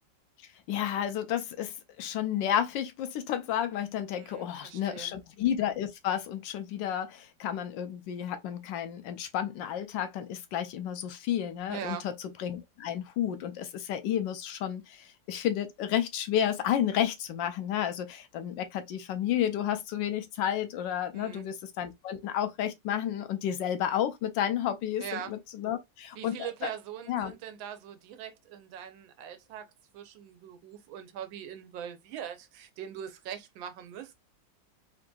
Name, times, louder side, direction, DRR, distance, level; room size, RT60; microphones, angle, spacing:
voice 1, 0.7-12.1 12.4-26.4 26.6-26.7 27.1-27.3, left 10 dB, 75° left, 1.2 m, -31 dB
voice 2, 4.1-5.1 11.7-12.1 21.1-21.5 25.0-25.3 26.2-34.1, right 9 dB, 90° right, 1.4 m, -41 dB
3.7 x 2.6 x 2.2 m
omnidirectional pair, 2.0 m